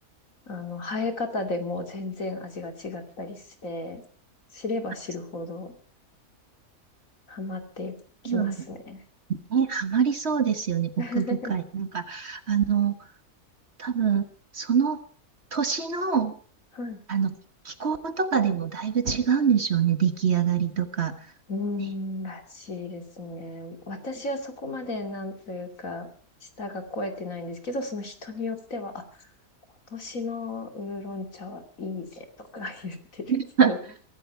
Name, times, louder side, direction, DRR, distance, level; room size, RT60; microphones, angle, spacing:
voice 1, 0.5-4.0 4.5-5.7 7.3-8.0 8.2-9.0 11.0-11.5 16.7-17.0 21.5-26.1 26.6-29.0 29.9-33.3 33.7-33.8, left 2 dB, 60° left, 5 dB, 3.0 m, -34 dB
voice 2, 8.2-8.6 9.3-12.9 13.8-14.2 14.5-15.0 15.5-16.3 17.1-17.3 17.6-21.2 21.8-21.9 33.3-33.7, right 7 dB, 45° right, 9 dB, 1.7 m, -25 dB
23.5 x 12.5 x 4.6 m, 0.42 s
omnidirectional pair, 1.6 m